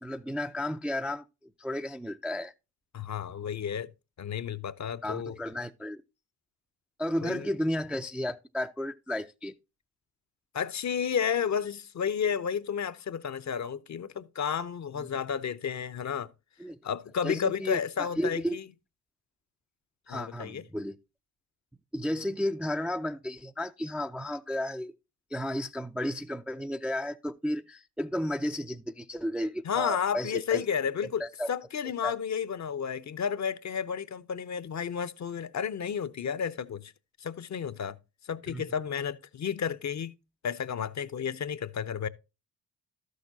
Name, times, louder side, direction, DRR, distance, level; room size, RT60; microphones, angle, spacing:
voice 1, 0.0-2.5 5.0-6.0 7.0-9.5 15.0-15.1 16.6-16.8 17.2-18.6 20.1-21.0 21.9-24.9 25.3-30.6 31.2-31.5 31.8-32.1 38.5-38.6, left 1 dB, ahead, 0.5 m, -33 dB
voice 2, 2.9-3.9 4.2-5.4 7.2-7.5 10.5-16.3 16.8-18.6 20.1-20.6 29.6-31.2 31.5-36.9 37.2-38.0 38.2-40.1 40.4-42.1, left 7 dB, 35° left, 0.8 m, -32 dB
13.0 x 6.5 x 2.7 m
hypercardioid pair, 45°, 50 cm